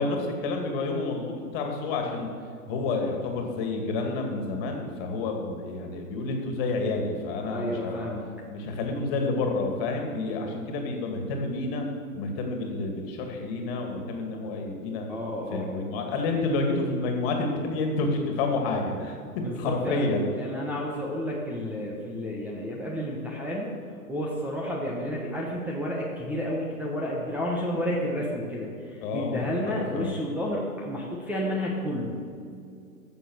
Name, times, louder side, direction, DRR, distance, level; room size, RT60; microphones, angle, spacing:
voice 1, 0.0-2.3 2.7-8.1 8.5-11.8 12.1-15.1 15.5-19.2 19.6-20.2 29.0-30.1, left 3 dB, 40° left, 2 dB, 2.3 m, -29 dB
voice 2, 7.4-8.3 15.1-15.7 19.4-20.0 20.4-23.7 24.1-32.2, equal, 5° right, -4 dB, 1.2 m, -31 dB
13.5 x 7.1 x 6.4 m, 2.3 s
hypercardioid pair, 130°, 45 cm